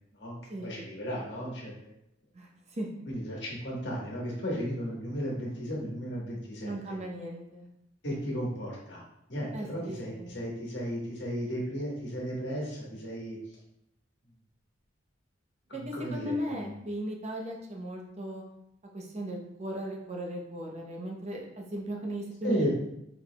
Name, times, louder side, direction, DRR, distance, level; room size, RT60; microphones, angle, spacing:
voice 1, 0.1-1.9 3.1-7.0 8.0-9.0 9.3-13.4 15.7-16.7 22.4-22.8, equal, 65° left, -4 dB, 1.3 m, -34 dB
voice 2, 2.3-2.9 6.6-7.7 9.5-10.4 15.7-18.4 18.9-22.8, right 1 dB, 35° right, 0 dB, 0.8 m, -37 dB
4.8 x 4.2 x 2.2 m, 0.80 s
head